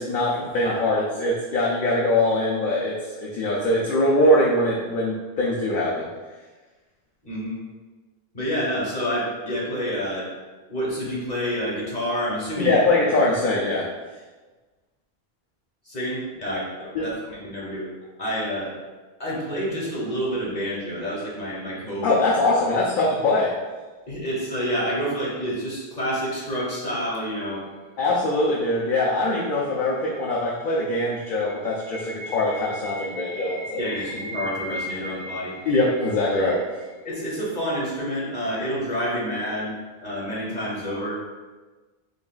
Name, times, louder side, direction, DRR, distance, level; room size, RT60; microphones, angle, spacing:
voice 1, 0.0-6.1 12.6-13.8 16.9-17.0 22.0-23.5 28.0-33.8 35.7-36.6, left 1 dB, 60° left, -5 dB, 0.7 m, -22 dB
voice 2, 7.2-7.6 8.3-10.3 10.7-12.7 15.9-17.9 18.2-18.7 19.2-22.1 24.1-27.6 33.8-35.5 36.4-36.5 37.0-39.7 40.0-41.3, equal, 45° left, -5 dB, 1.2 m, -28 dB
sound 1, 28.8-37.8, equal, 60° right, 0.6 m, -39 dB
3.9 x 3.6 x 2.3 m, 1.3 s
omnidirectional pair, 1.0 m